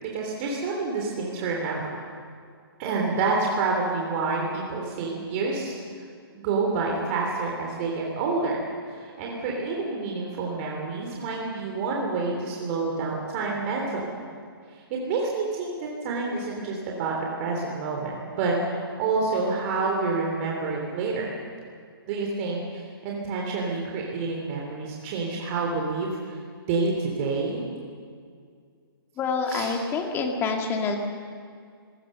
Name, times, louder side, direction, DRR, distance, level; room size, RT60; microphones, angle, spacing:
voice 1, 0.0-1.9 2.8-5.8 6.3-14.0 14.7-21.3 22.1-26.4 26.7-27.6 29.4-29.7, right 3 dB, 35° right, -1 dB, 3.2 m, -28 dB
voice 2, 29.2-31.0, left 4 dB, 20° left, 3 dB, 2.4 m, -27 dB
26.0 x 17.5 x 6.7 m, 2.2 s
hypercardioid pair, 145°, 13 cm